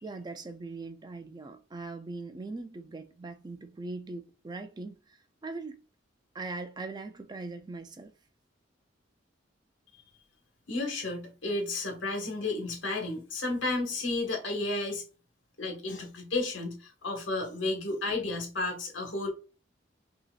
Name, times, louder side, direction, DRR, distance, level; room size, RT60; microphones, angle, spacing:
voice 1, 0.0-5.2 5.4-5.8 6.3-8.1, right 3 dB, 20° right, 0.4 m, -40 dB
voice 2, 10.7-15.0 15.6-19.3, left 2 dB, 75° left, 1.5 m, -32 dB
5.6 x 2.8 x 2.4 m
head